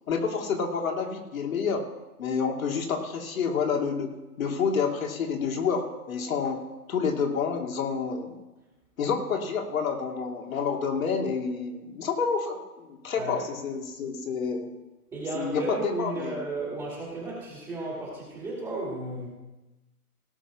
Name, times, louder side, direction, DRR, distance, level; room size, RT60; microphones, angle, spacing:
voice 1, 0.1-1.8 2.2-4.1 4.4-6.6 6.9-8.3 9.0-14.7 15.3-16.4, left 5 dB, 60° left, 2 dB, 2.4 m, -28 dB
voice 2, 15.1-19.3, right 2 dB, 10° right, -5 dB, 2.2 m, -34 dB
17.5 x 6.3 x 6.0 m, 1.1 s
hypercardioid pair, 165°, 47 cm